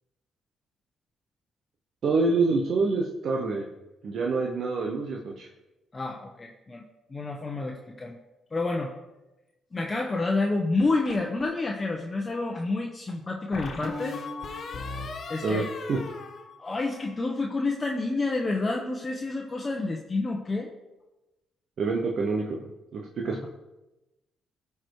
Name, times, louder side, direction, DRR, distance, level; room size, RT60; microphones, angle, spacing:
voice 1, 2.0-3.7 4.0-5.5 15.4-16.0 21.8-23.5, right 3 dB, 60° right, 0 dB, 1.0 m, -27 dB
voice 2, 5.9-6.8 7.1-8.1 8.5-8.9 9.7-14.2 15.3-15.6 16.6-20.7 23.3-23.5, left 3 dB, 25° left, 1 dB, 1.1 m, -29 dB
sound 1, 10.8-11.6 13.5-17.2, left 4 dB, 55° left, 1.5 m, -38 dB
14.0 x 4.8 x 4.8 m, 1.0 s
cardioid pair, 90°, 0 cm